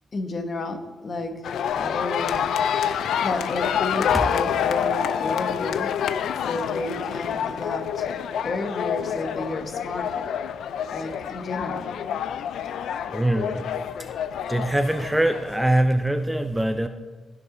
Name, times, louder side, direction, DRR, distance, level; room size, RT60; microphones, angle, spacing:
voice 1, 0.1-2.4 3.2-5.9 6.5-8.1 8.4-10.3 10.9-11.9, left 2 dB, 40° left, 6 dB, 1.0 m, -31 dB
sound 1, 1.4-15.8, left 8 dB, 80° left, 0.4 m, -27 dB
voice 2, 2.8-3.3 13.1-13.7 14.5-16.9, right 1 dB, 5° right, 8 dB, 0.4 m, -23 dB
16.0 x 6.0 x 3.8 m, 1.3 s
cardioid pair, 130°, 0 cm